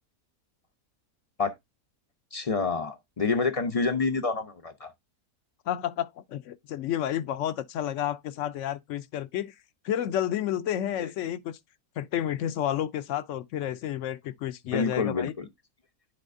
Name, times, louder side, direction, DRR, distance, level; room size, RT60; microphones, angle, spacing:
voice 1, 2.3-4.9 11.0-11.1 14.7-15.5, left 4 dB, 45° left, 0.4 m, -28 dB
voice 2, 5.7-9.5 9.8-11.6 12.0-15.3, left 11 dB, 65° left, 0.8 m, -30 dB
10.0 x 4.2 x 2.5 m
omnidirectional pair, 1.6 m